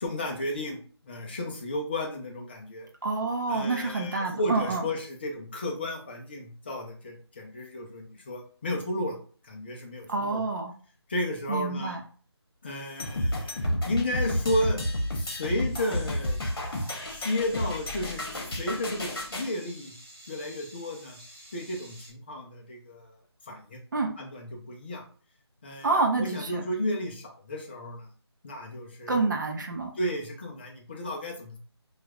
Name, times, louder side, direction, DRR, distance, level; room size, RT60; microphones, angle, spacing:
voice 1, 0.0-2.9 3.5-9.2 9.4-10.5 11.1-12.0 12.6-14.8 15.1-16.4 17.1-18.3 18.6-19.9 20.3-21.2 21.5-23.2 23.5-23.8 24.2-25.0 25.6-25.9 26.2-28.1 28.4-29.3 30.0-31.6, left 1 dB, 25° left, 1 dB, 0.5 m, -33 dB
voice 2, 3.0-4.8 10.1-10.7 11.5-12.0 23.9-24.1 25.8-26.6 29.1-29.9, right 3 dB, 45° right, 3 dB, 0.5 m, -27 dB
sound 1, 13.0-19.5, left 1 dB, 55° left, 1.0 m, -31 dB
sound 2, 15.6-22.1, equal, 30° right, 1.2 m, -50 dB
4.4 x 2.3 x 2.3 m, 0.42 s
figure-of-eight pair, 160°, 14 cm